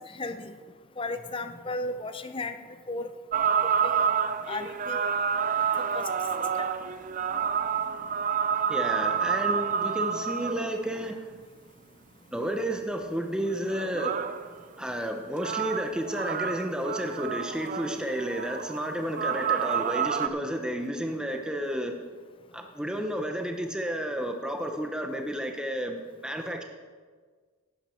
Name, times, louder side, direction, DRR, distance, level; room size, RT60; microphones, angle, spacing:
voice 1, 0.1-0.5 1.0-2.6 2.9-3.1 3.8-4.1 4.5-5.1 5.8-6.1, left 2 dB, 25° left, 9 dB, 0.6 m, -34 dB
sound 1, 3.3-10.7 13.5-14.5 15.4-20.3, right 7 dB, 35° right, 0.4 m, -29 dB
voice 2, 8.7-11.3 12.3-14.2 14.8-21.9 22.5-26.6, equal, 5° right, 3 dB, 0.8 m, -31 dB
11.5 x 10.5 x 4.5 m, 1.5 s
head